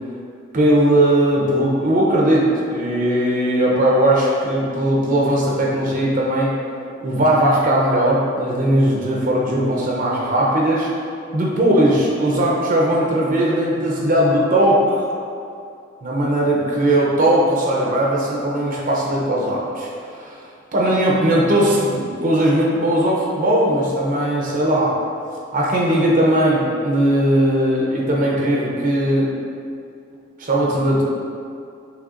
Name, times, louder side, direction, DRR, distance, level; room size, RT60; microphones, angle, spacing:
voice 1, 0.5-6.5 7.0-10.9 11.3-15.0 16.0-25.0 25.5-29.3 30.4-31.0, right 1 dB, 40° right, -3 dB, 0.6 m, -18 dB
6.1 x 3.5 x 2.5 m, 2.5 s
head